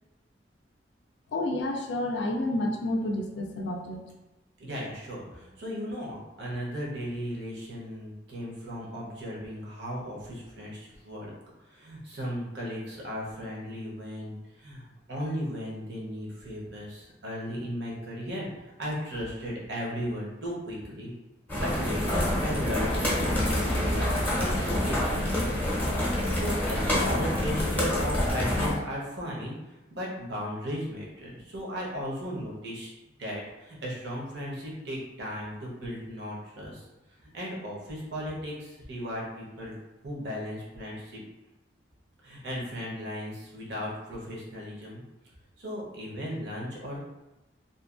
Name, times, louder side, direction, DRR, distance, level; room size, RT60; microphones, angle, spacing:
voice 1, 1.3-4.0, left 1 dB, 65° left, 2 dB, 0.3 m, -29 dB
voice 2, 4.6-11.3 11.7-18.5 18.8-21.1 21.5-29.5 29.9-32.9 33.2-36.8 37.3-39.7 40.0-41.2 42.2-45.0 45.6-47.1, equal, 65° right, -4 dB, 0.8 m, -36 dB
sound 1, 21.5-28.7, left 1 dB, 10° left, 0.6 m, -27 dB
2.6 x 2.3 x 2.4 m, 1.0 s
head